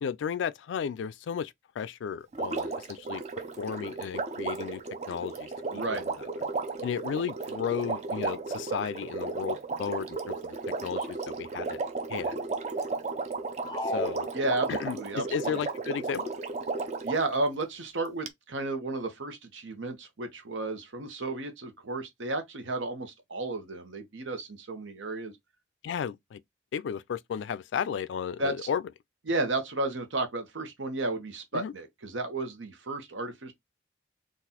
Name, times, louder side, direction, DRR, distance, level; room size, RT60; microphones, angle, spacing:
voice 1, 0.0-3.2 3.6-4.8 5.1-6.0 6.8-10.6 10.8-11.8 12.1-12.4 13.8-14.3 14.7-16.3 25.8-26.4 26.7-28.8 31.5-31.7, left 7 dB, 75° left, 0.3 m, -34 dB
Water, 2.3-17.3 18.3-18.4, right 3 dB, 35° right, 0.4 m, -34 dB
voice 2, 5.7-6.0 14.3-15.6 17.0-25.3 28.4-28.5 29.3-33.5, right 2 dB, 90° right, 1.0 m, -33 dB
sound 1, 13.6-15.1, left 2 dB, 20° left, 0.5 m, -35 dB
3.9 x 2.5 x 2.8 m
head